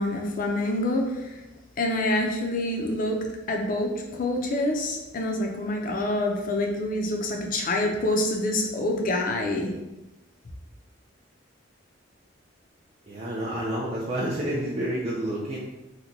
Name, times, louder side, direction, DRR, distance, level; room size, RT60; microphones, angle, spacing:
voice 1, 0.0-1.4 1.8-9.7, left 1 dB, 45° left, 2 dB, 0.5 m, -27 dB
voice 2, 13.1-15.6, right 1 dB, 35° right, -6 dB, 0.4 m, -29 dB
2.8 x 2.2 x 3.9 m, 1.0 s
head